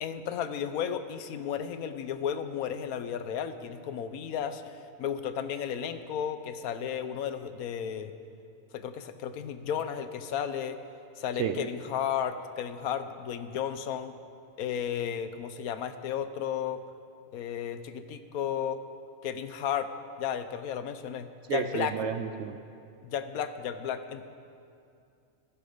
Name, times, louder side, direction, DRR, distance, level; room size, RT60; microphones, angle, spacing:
voice 1, 0.0-8.1 8.7-10.8 11.2-14.1 14.6-16.8 17.3-18.8 19.2-19.9 20.2-22.0 23.0-24.2, left 8 dB, 85° left, 11 dB, 1.2 m, -33 dB
voice 2, 21.5-22.6, right 7 dB, 65° right, 8 dB, 0.7 m, -31 dB
15.0 x 11.5 x 5.1 m, 2.4 s
omnidirectional pair, 1.5 m